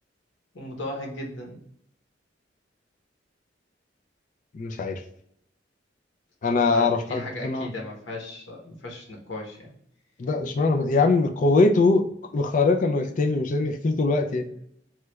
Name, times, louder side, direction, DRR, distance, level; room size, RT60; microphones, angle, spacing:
voice 1, 0.5-1.6 6.6-9.7, left 1 dB, 85° left, 0 dB, 1.0 m, -36 dB
voice 2, 4.5-5.0 6.4-7.7 10.2-14.5, left 3 dB, 45° left, 6 dB, 0.4 m, -22 dB
3.1 x 2.3 x 3.0 m, 0.69 s
head